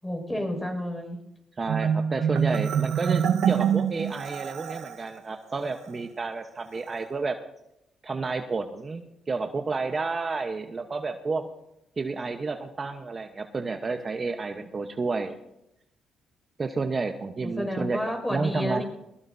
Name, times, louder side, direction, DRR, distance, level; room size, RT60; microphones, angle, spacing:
voice 1, 0.0-1.2 17.4-18.8, left 1 dB, 10° left, 3 dB, 6.0 m, -30 dB
voice 2, 1.6-7.4 8.0-11.5 12.0-15.4 16.6-18.0 18.3-18.8, right 4 dB, 35° right, 5 dB, 1.1 m, -30 dB
Marimba xylophone, 1.7-5.0, right 8 dB, 85° right, 1.2 m, -25 dB
21.5 x 21.0 x 2.8 m, 0.85 s
cardioid pair, 90°, 0 cm